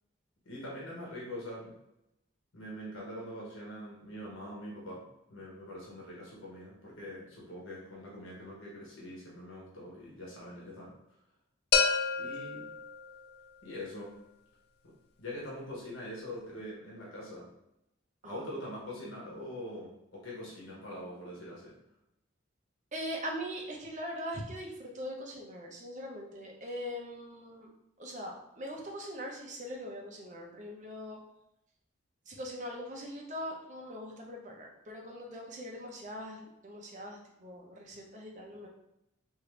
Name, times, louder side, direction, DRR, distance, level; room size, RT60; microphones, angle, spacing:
voice 1, 0.4-1.7 2.5-11.0 12.2-12.7 13.6-14.1 14.8-17.5 18.2-21.7, left 1 dB, 85° left, -5 dB, 1.1 m, -43 dB
sound 1, 11.7-13.6, left 5 dB, 50° left, 0.4 m, -30 dB
voice 2, 22.9-27.7 28.0-31.2 32.3-38.7, equal, 35° right, 0 dB, 0.7 m, -41 dB
3.7 x 2.7 x 3.3 m, 0.84 s
head